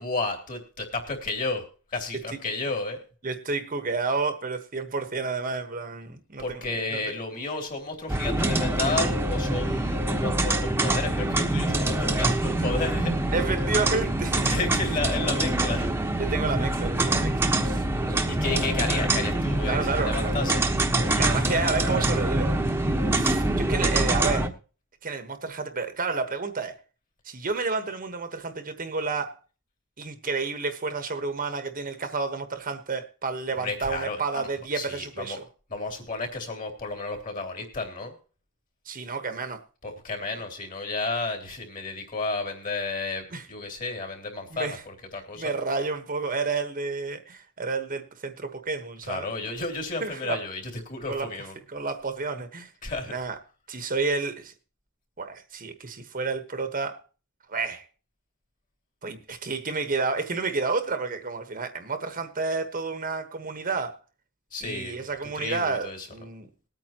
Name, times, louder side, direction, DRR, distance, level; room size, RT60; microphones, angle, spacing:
voice 1, 0.0-1.6 1.9-3.0 6.4-13.3 14.4-15.9 18.3-20.6 33.5-34.5 34.7-35.4 35.7-38.1 39.8-45.6 49.0-51.6 52.8-53.1 64.5-66.1, left 3 dB, 40° left, 3 dB, 3.1 m, -32 dB
voice 2, 3.2-6.6 6.9-7.0 13.3-14.5 16.2-18.3 19.7-20.4 21.2-22.5 23.2-24.5 25.0-26.8 27.2-29.3 30.0-35.4 38.9-39.6 43.3-43.4 44.5-44.8 45.3-49.3 50.0-50.4 51.1-51.3 51.7-52.7 53.1-53.3 53.7-54.5 55.2-57.0 57.5-57.8 59.0-64.0 64.6-66.5, right 4 dB, 40° right, 8 dB, 1.2 m, -30 dB
sound 1, 8.1-24.5, right 1 dB, 10° right, 1.1 m, -25 dB
20.5 x 9.0 x 2.9 m, 0.36 s
head